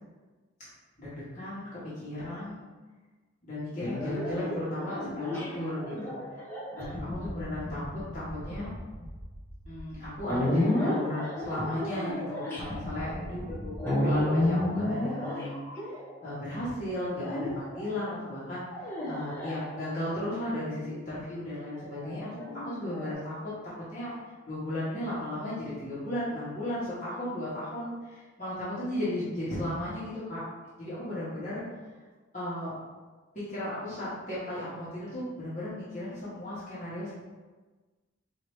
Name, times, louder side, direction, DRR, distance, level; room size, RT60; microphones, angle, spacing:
voice 1, 1.0-1.7 2.0-2.7 3.5-6.4 6.7-7.8 8.1-8.7 9.7-13.4 13.8-15.6 15.9-16.0 16.2-18.7 19.0-22.4 22.7-23.5 23.9-24.1 24.4-30.4 30.8-31.6 32.3-32.7 33.3-37.2, left 1 dB, 40° left, -12 dB, 1.2 m, -35 dB
sound 1, 3.8-16.4 17.2-17.9 18.7-20.2 21.7-23.1, left 1 dB, 10° left, 0.7 m, -32 dB
4.6 x 2.7 x 3.1 m, 1.3 s
head